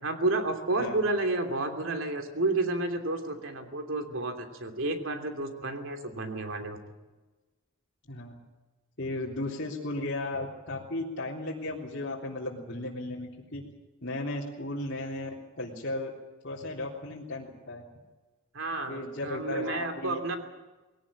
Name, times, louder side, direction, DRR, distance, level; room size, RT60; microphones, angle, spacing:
voice 1, 0.0-6.8 18.5-20.4, right 2 dB, 65° right, 5 dB, 3.0 m, -31 dB
voice 2, 9.0-13.6 14.0-15.3 15.6-16.1 16.4-17.8 18.9-20.2, left 2 dB, 55° left, -5 dB, 3.6 m, -35 dB
21.0 x 18.0 x 8.8 m, 1.2 s
head